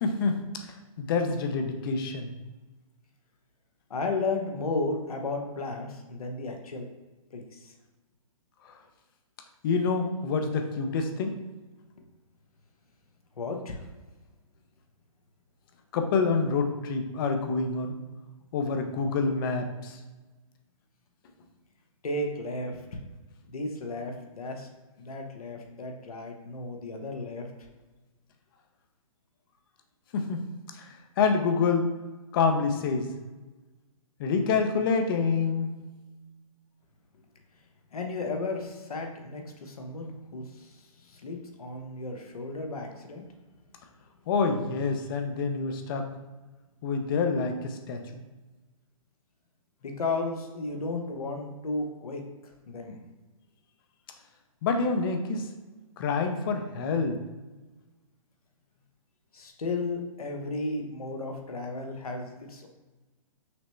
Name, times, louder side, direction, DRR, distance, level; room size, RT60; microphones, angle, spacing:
voice 1, 0.0-0.4 1.0-2.3 8.6-8.7 9.6-11.4 15.9-18.0 18.5-20.0 30.1-30.4 30.7-31.9 32.3-33.1 34.2-35.7 44.3-46.1 46.8-48.2 54.6-55.5 56.0-57.2, left 4 dB, 40° left, 5 dB, 0.6 m, -27 dB
voice 2, 3.9-6.9 7.3-7.7 13.4-13.9 22.0-23.0 23.5-24.7 25.0-27.5 37.9-43.3 49.8-52.2 52.7-53.0 59.3-62.7, left 3 dB, 85° left, 3 dB, 0.9 m, -34 dB
5.9 x 2.1 x 3.1 m, 1.2 s
hypercardioid pair, 140°, 18 cm